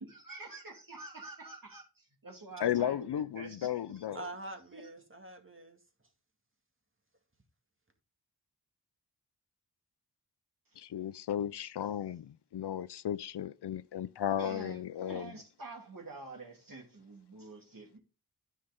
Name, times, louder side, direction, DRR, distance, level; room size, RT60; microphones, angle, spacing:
voice 1, 0.0-4.1 4.7-4.9 14.3-18.0, right 3 dB, 55° right, 2.8 m, -48 dB
voice 2, 2.6-4.2 10.8-15.3, left 10 dB, 80° left, 0.5 m, -34 dB
voice 3, 4.1-5.8, right 2 dB, 30° right, 2.1 m, -45 dB
9.5 x 5.7 x 3.6 m
cardioid pair, 45°, 40 cm